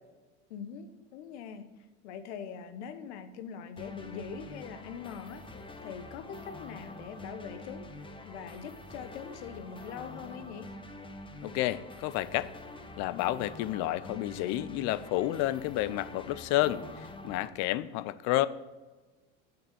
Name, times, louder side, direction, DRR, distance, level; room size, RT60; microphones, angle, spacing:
voice 1, 0.5-5.5 5.8-7.9 8.2-10.7, left 7 dB, 80° left, 10 dB, 1.3 m, -43 dB
sound 1, 3.8-17.5, left 2 dB, 15° left, 0.9 m, -46 dB
voice 2, 11.4-12.5 13.0-18.5, left 15 dB, 55° left, 17 dB, 0.6 m, -30 dB
7.8 x 7.0 x 7.6 m, 1.3 s
supercardioid pair, 115°, 34 cm